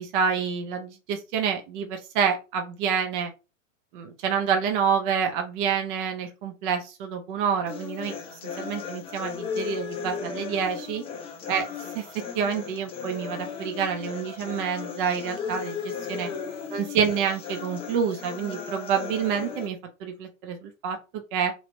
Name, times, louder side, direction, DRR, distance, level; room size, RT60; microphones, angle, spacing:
voice 1, 0.0-3.3 3.9-8.1 8.4-11.0 11.5-11.6 11.9-16.3 16.7-21.5, right 7 dB, 40° right, 5 dB, 0.7 m, -28 dB
sound 1, 7.7-19.7, left 6 dB, 15° left, 0.5 m, -36 dB
3.0 x 2.9 x 2.7 m, 0.30 s
figure-of-eight pair, 100°, 40 cm